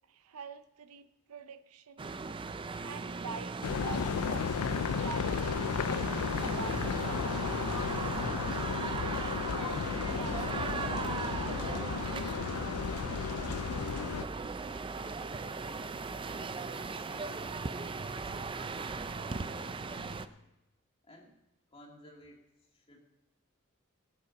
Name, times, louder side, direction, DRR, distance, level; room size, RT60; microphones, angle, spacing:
voice 1, 0.1-2.2 2.8-4.5 4.9-8.1 8.9-12.8, right 5 dB, 85° right, 12 dB, 0.6 m, -47 dB
sound 1, 2.0-20.3, right 4 dB, 25° right, 0.4 m, -38 dB
sound 2, 3.6-14.2, left 6 dB, 90° left, 0.4 m, -34 dB
voice 2, 15.0-16.0 16.5-20.4 21.0-21.3 21.7-23.0, left 1 dB, 25° left, 0 dB, 2.2 m, -54 dB
19.5 x 8.2 x 4.1 m, 0.93 s
head